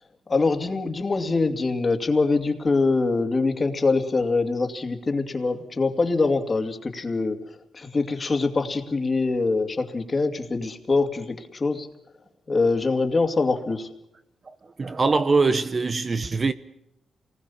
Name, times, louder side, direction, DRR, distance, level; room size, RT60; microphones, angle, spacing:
voice 1, 0.3-7.4 7.7-11.9 12.5-13.9, left 3 dB, 30° left, 2.4 m, -24 dB
voice 2, 14.8-16.5, right 4 dB, 30° right, 0.9 m, -22 dB
28.0 x 20.0 x 7.1 m
cardioid pair, 135°, 0 cm